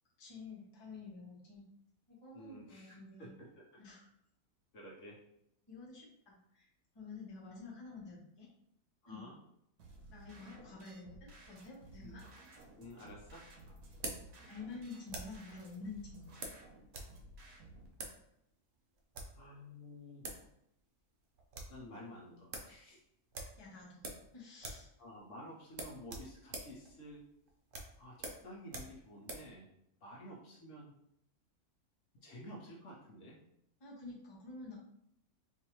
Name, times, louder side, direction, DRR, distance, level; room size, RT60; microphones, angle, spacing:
voice 1, 0.2-1.6 2.1-3.3 3.8-4.1 5.7-6.7 6.9-8.5 9.1-9.3 10.1-12.2 14.5-16.3 23.6-24.0 24.3-24.9 33.8-34.8, left 3 dB, 20° left, -4 dB, 0.8 m, -49 dB
voice 2, 2.3-3.8 4.7-5.2 9.0-9.4 12.0-12.2 12.8-13.4 19.3-20.3 21.7-23.0 24.7-27.3 28.0-29.7 30.0-30.9 32.2-33.4, equal, 60° left, -3 dB, 1.1 m, -52 dB
sound 1, 9.8-17.9, right 2 dB, 90° right, 1.3 m, -56 dB
sound 2, 12.5-15.5 16.4-17.1 17.4-17.5 17.9-18.2 18.9-19.4 20.0-20.1 20.2-20.5 20.8-20.9 21.2-21.8 22.1-22.2 22.5-22.7 23.3-24.3 24.6-24.9 25.2-25.3 25.7-29.5, right 2 dB, 55° right, 0.6 m, -46 dB
4.5 x 2.5 x 2.9 m, 0.77 s
omnidirectional pair, 1.6 m